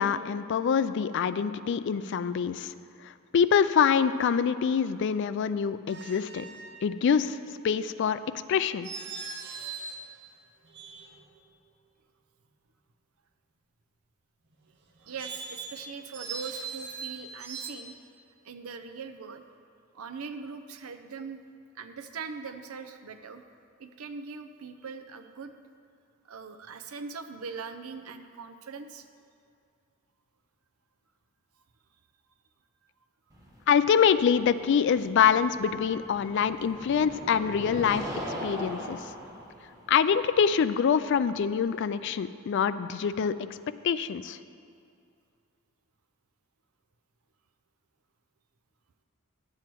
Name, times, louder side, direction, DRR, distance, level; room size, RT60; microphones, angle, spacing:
voice 1, 0.0-2.7 3.0-6.4 6.8-7.4 7.6-8.2 8.5-8.9 33.7-39.1 39.9-43.3 43.8-44.4, left 7 dB, 55° left, 13 dB, 0.3 m, -25 dB
sound 1, 5.9-6.8 8.8-10.1 10.7-11.4 15.0-17.7, right 5 dB, 55° right, 0.9 m, -40 dB
voice 2, 15.0-17.9 18.4-19.4 19.9-21.4 21.7-23.4 23.8-25.5 26.2-29.1, right 5 dB, 85° right, 8 dB, 0.6 m, -41 dB
sound 2, 33.3-42.1, equal, 15° right, 1.3 m, -41 dB
11.5 x 7.7 x 4.6 m, 2.5 s
head